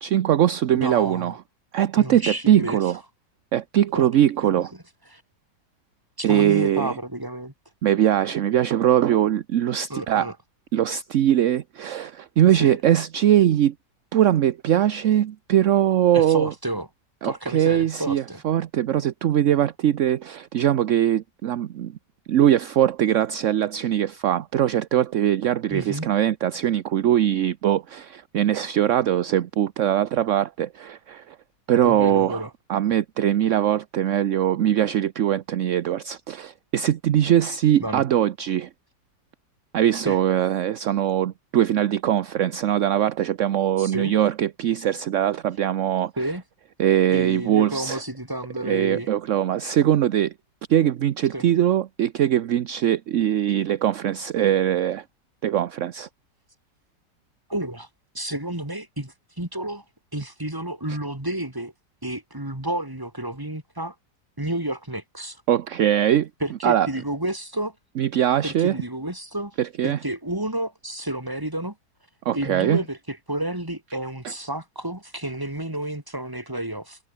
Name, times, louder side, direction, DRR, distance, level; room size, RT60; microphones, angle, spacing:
voice 1, 0.0-1.3 1.7-3.0 3.5-4.7 6.2-7.0 7.8-10.3 10.7-13.7 14.1-16.5 17.2-21.9 22.3-31.4 31.7-32.4 32.7-38.7 39.7-46.1 46.8-48.0 48.6-50.3 50.7-55.0 55.4-56.1 65.5-66.3 66.6-66.9 68.0-68.8 69.6-70.0 72.3-72.8, right 11 dB, 60° right, 0.9 m, -21 dB
voice 2, 0.7-1.4 2.0-2.8 3.9-4.1 4.4-4.6 5.1-5.2 6.2-7.5 9.9-10.3 12.6-12.8 16.1-16.9 17.2-18.4 25.7-26.1 31.8-32.5 37.8-38.0 40.0-40.2 43.8-44.1 46.2-46.4 47.1-49.1 51.3-51.5 57.5-57.9 58.1-59.8 60.1-61.7 62.0-64.0 64.4-65.4 66.4-67.8 68.4-69.6 69.8-71.8 72.3-77.0, right 1 dB, 10° right, 3.5 m, -30 dB
omnidirectional pair, 1.9 m